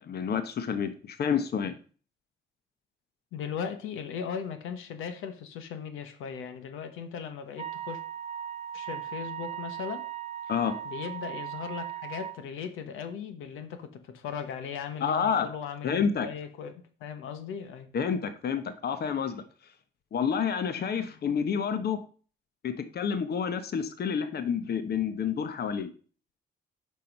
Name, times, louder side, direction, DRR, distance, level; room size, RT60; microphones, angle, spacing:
voice 1, 0.0-1.8 10.5-10.8 15.0-15.5 15.8-16.3 17.9-19.4 20.1-22.0 22.6-25.9, left 7 dB, 55° left, 11 dB, 1.1 m, -29 dB
voice 2, 3.3-8.0 8.7-10.0 10.8-16.7 17.0-17.9, left 7 dB, 90° left, 8 dB, 1.1 m, -38 dB
Wind instrument woodwind instrument, 7.6-12.4, right 11 dB, 35° right, 0.9 m, -38 dB
7.5 x 5.8 x 5.3 m, 0.40 s
cardioid pair, 90°, 20 cm